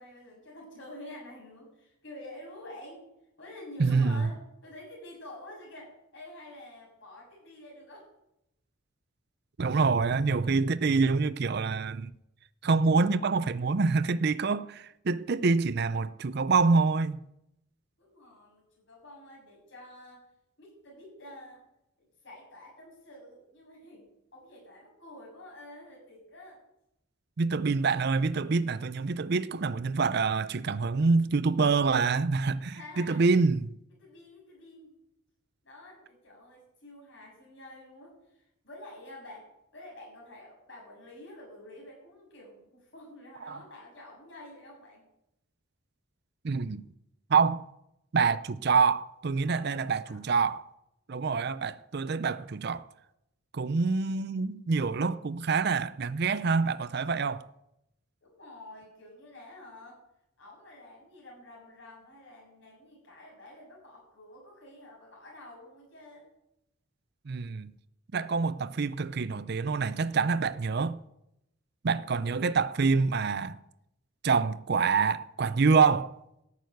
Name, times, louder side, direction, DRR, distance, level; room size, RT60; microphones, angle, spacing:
voice 1, 0.0-3.0 3.4-8.1 18.0-20.3 20.6-21.6 22.0-26.6 32.7-33.2 34.0-34.9 35.6-45.0 49.4-50.2 58.2-60.0 60.4-66.3, left 1 dB, 60° left, 7.1 m, -49 dB
voice 2, 3.8-4.3 9.6-12.1 12.6-17.2 27.4-33.7 43.5-43.6 46.4-46.8 47.3-47.6 48.1-50.6 51.1-52.8 53.5-57.4 67.3-67.7 68.1-71.0 71.8-73.6 74.2-76.2, right 4 dB, 50° right, 0.5 m, -26 dB
14.0 x 6.9 x 9.2 m
head